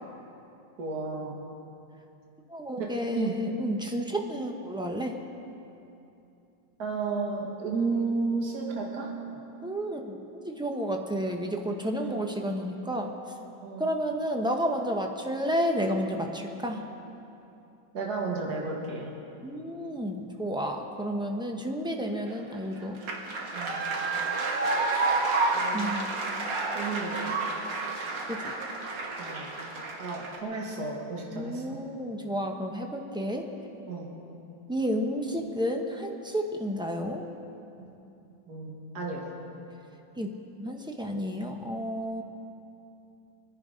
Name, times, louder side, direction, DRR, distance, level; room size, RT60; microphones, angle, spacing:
voice 1, 0.8-1.4 2.8-3.4 6.8-9.1 12.0-12.3 13.6-13.9 17.9-19.1 23.5-23.9 25.5-25.9 26.7-27.4 29.2-29.5 30.0-31.8 33.9-34.1 37.8-37.9 38.5-39.2, right 4 dB, 60° right, -1 dB, 2.3 m, -33 dB
voice 2, 2.5-5.2 9.6-13.1 13.8-16.8 19.4-23.0 25.7-26.1 28.3-28.4 31.3-33.4 34.7-37.2 40.2-40.3 40.6-42.2, equal, 5° right, 2 dB, 0.3 m, -31 dB
sound 1, 22.3-30.4, right 3 dB, 85° right, 2.2 m, -30 dB
24.0 x 10.5 x 5.1 m, 2.8 s
omnidirectional pair, 1.9 m